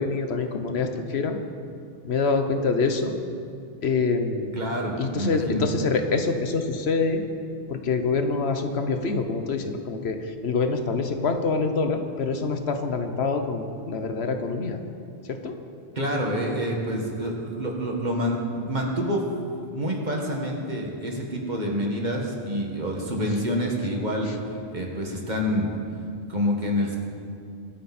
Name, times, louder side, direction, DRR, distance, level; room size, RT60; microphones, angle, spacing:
voice 1, 0.0-1.4 2.0-3.1 3.8-4.6 5.0-7.2 7.7-14.8 15.3-15.5, left 4 dB, 80° left, 6 dB, 1.3 m, -25 dB
voice 2, 4.6-5.7 16.0-25.7 26.3-27.0, equal, 45° right, 0 dB, 2.0 m, -27 dB
24.0 x 9.2 x 4.3 m, 2.5 s
omnidirectional pair, 1.1 m